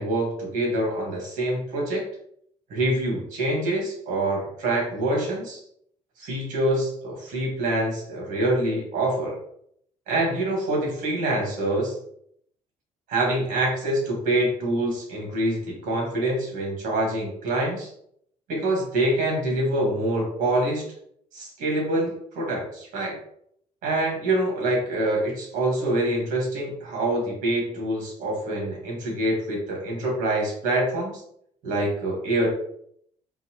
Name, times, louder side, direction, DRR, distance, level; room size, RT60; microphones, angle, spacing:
voice 1, 0.0-2.1 2.7-5.6 6.2-9.4 10.1-11.9 13.1-17.9 18.5-20.8 21.3-23.2 23.8-31.2 31.6-32.5, right 1 dB, 80° right, -1 dB, 1.4 m, -25 dB
3.9 x 2.1 x 2.9 m, 0.69 s
cardioid pair, 110°, 14 cm